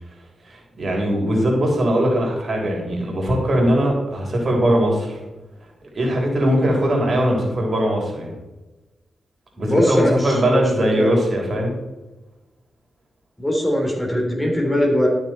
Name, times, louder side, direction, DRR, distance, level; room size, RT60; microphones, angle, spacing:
voice 1, 0.5-5.2 5.9-8.3 9.6-11.7, equal, 50° right, -1 dB, 3.5 m, -20 dB
voice 2, 9.6-11.1 13.4-15.1, left 1 dB, 15° left, -1 dB, 3.5 m, -21 dB
13.0 x 6.6 x 4.4 m, 1.1 s
cardioid pair, 70°, 0 cm